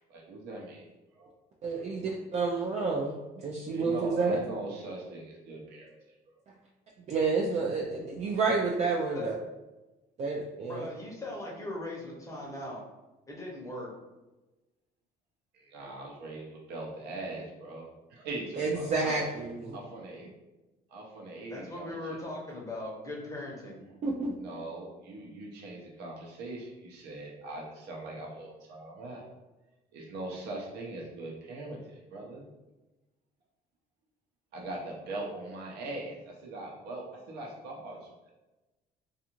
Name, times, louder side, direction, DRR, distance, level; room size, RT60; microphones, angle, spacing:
voice 1, 0.1-1.3 3.7-6.0 15.5-19.3 19.7-20.3 20.9-22.2 24.4-29.2 29.9-32.5 34.5-38.3, right 2 dB, 75° right, -1 dB, 0.7 m, -41 dB
voice 2, 1.6-4.4 7.1-9.3 10.2-10.9 18.6-19.8 24.0-24.3, right 4 dB, 40° right, -3 dB, 0.4 m, -30 dB
voice 3, 10.7-12.8 13.3-13.9 21.5-23.8, left 1 dB, 20° left, -3 dB, 0.7 m, -39 dB
2.4 x 2.4 x 2.9 m, 1.1 s
cardioid pair, 110°, 17 cm